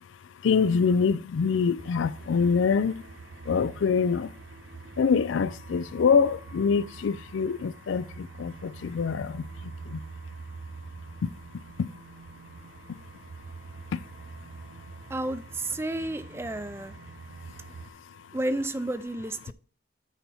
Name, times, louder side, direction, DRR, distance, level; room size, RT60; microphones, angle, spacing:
voice 1, 0.4-3.0 3.5-4.3 5.0-10.0 11.2-11.3 11.8-11.9 13.9-14.0, left 5 dB, 90° left, 0.4 m, -25 dB
sound 1, 1.8-17.9, right 4 dB, 80° right, 0.6 m, -45 dB
voice 2, 15.1-17.0 18.3-19.5, right 1 dB, 15° right, 0.4 m, -31 dB
9.0 x 4.3 x 4.2 m
head